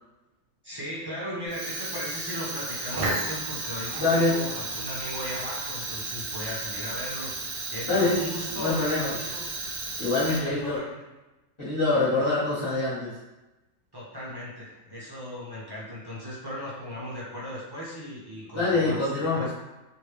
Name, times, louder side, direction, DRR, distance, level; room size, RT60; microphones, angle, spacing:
voice 1, 0.6-7.3 7.7-9.4 10.1-11.1 13.9-19.0 19.3-19.5, equal, 30° right, -6 dB, 0.4 m, -37 dB
Fire, 1.5-10.8, right 2 dB, 55° right, 0.9 m, -34 dB
voice 2, 4.0-4.3 7.9-8.2 8.5-9.1 10.0-10.8 11.6-13.1 18.5-19.5, left 3 dB, 20° left, -10 dB, 1.2 m, -25 dB
3.3 x 2.6 x 3.1 m, 1.0 s
omnidirectional pair, 1.6 m